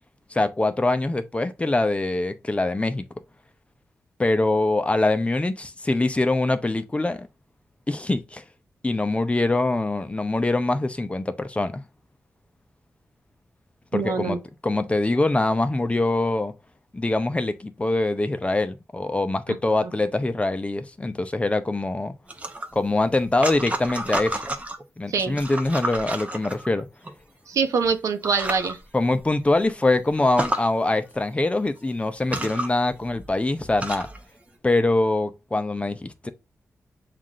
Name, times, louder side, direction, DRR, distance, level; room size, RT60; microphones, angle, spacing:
voice 1, 0.3-3.1 4.2-7.3 7.9-8.4 8.8-11.8 13.9-14.4 14.6-16.5 16.9-22.1 22.7-24.4 25.0-26.9 28.9-34.1 34.6-36.3, left 2 dB, 25° left, 0.6 m, -23 dB
voice 2, 13.9-14.4 19.8-19.9 25.1-25.4 27.5-28.8, right 5 dB, 85° right, 0.7 m, -24 dB
sound 1, 22.3-24.8 25.3-27.1 27.8-28.0 28.2-28.7 29.2-29.3 29.6-29.7 30.2-30.6 31.6-31.7 32.2-34.2, right 1 dB, 25° right, 0.8 m, -31 dB
7.2 x 2.5 x 2.4 m
cardioid pair, 60°, 5 cm